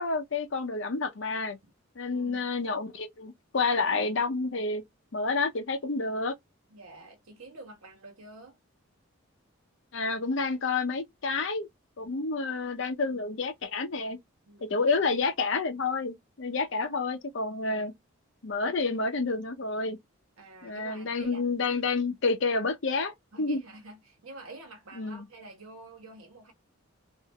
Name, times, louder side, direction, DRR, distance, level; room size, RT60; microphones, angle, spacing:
voice 1, 0.0-1.6 2.0-4.8 5.1-6.3 9.9-11.7 12.0-14.2 14.6-17.9 18.4-20.0 20.6-23.1 23.4-23.6 25.0-25.3, left 3 dB, 60° left, 0.6 m, -29 dB
voice 2, 2.1-2.5 6.7-8.6 14.5-14.8 17.6-17.9 20.4-21.4 21.9-22.0 23.3-26.5, right 2 dB, 90° right, 1.4 m, -48 dB
3.6 x 2.6 x 2.2 m
head